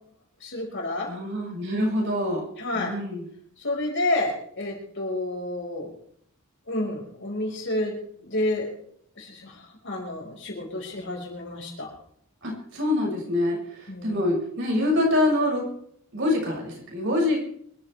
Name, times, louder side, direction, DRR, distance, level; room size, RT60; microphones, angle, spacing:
voice 1, 0.4-1.1 2.6-2.9 3.6-5.9 6.7-8.0 8.2-8.7 9.2-11.9 13.9-14.2, left 1 dB, 55° left, -1 dB, 5.4 m, -30 dB
voice 2, 1.1-2.5 2.7-3.2 12.4-15.6 16.1-17.4, left 1 dB, 55° right, -2 dB, 6.9 m, -25 dB
25.5 x 14.0 x 3.5 m, 0.66 s
head